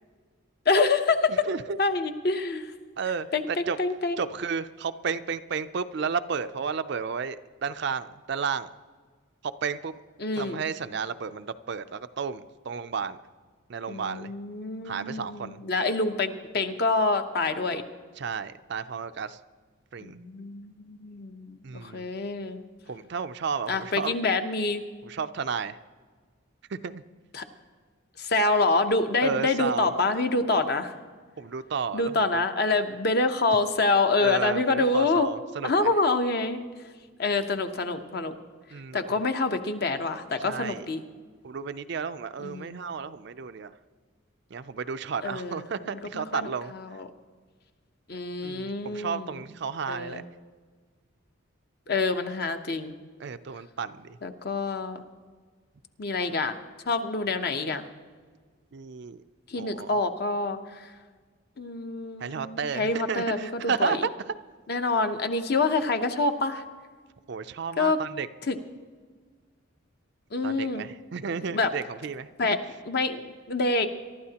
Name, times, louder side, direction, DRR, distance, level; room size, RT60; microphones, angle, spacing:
voice 1, 0.7-1.5 1.8-2.6 3.3-4.2 10.2-10.6 13.9-17.8 20.0-22.6 23.7-24.8 27.3-27.4 28.2-30.9 31.9-35.3 35.6-36.7 37.2-38.3 38.9-41.0 42.4-42.8 45.2-47.1 48.1-49.4 49.9-50.2 51.9-52.9 54.2-55.0 56.0-56.6 56.9-57.8 59.5-60.8 61.6-64.0 64.7-66.6 67.8-68.0 68.4-68.6 70.3-70.9 71.5-71.7 72.4-72.6 72.9-73.9, left 3 dB, 50° left, 7 dB, 0.8 m, -26 dB
voice 2, 1.5-1.8 3.0-3.8 4.2-8.7 9.6-9.9 10.4-13.2 13.7-14.3 14.9-15.6 18.2-19.4 19.9-20.2 21.6-22.1 22.9-24.1 25.0-25.8 26.8-27.0 29.2-29.9 31.4-32.2 34.2-35.9 38.7-39.0 40.4-40.9 41.4-43.7 44.5-46.7 48.4-50.2 53.2-54.2 58.7-59.2 59.6-59.9 62.2-64.1 67.3-68.3 70.4-72.3, right 6 dB, 55° right, 11 dB, 0.4 m, -32 dB
23.5 x 12.0 x 2.9 m, 1.5 s
head